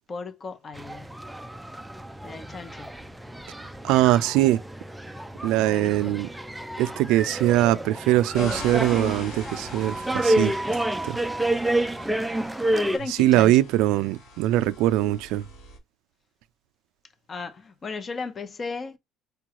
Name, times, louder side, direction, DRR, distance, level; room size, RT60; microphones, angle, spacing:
voice 1, 0.1-1.1 2.2-2.9 5.7-6.2 11.8-12.0 12.4-12.5 12.7-13.5 17.3-19.0, left 4 dB, 30° left, 0.6 m, -36 dB
sound 1, 0.8-13.0, right 1 dB, 5° right, 0.3 m, -29 dB
voice 2, 3.8-4.6 5.4-6.3 6.8-10.6 11.0-11.2 13.2-15.5, right 15 dB, 80° right, 0.3 m, -22 dB
sound 2, 8.3-15.8, left 2 dB, 90° left, 1.7 m, -43 dB
4.8 x 2.3 x 2.9 m
cardioid pair, 120°, 0 cm